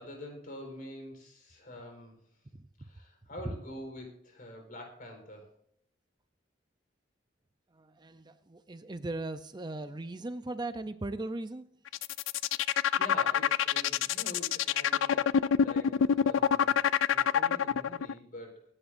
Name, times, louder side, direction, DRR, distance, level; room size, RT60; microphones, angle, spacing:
voice 1, 0.0-2.2 2.8-5.5 12.6-18.7, left 1 dB, 45° left, 2 dB, 4.5 m, -46 dB
voice 2, 7.8-11.7, right 2 dB, 25° right, 10 dB, 0.6 m, -38 dB
sound 1, 11.9-18.1, left 8 dB, 80° left, 0.4 m, -26 dB
24.0 x 11.0 x 2.6 m, 0.66 s
head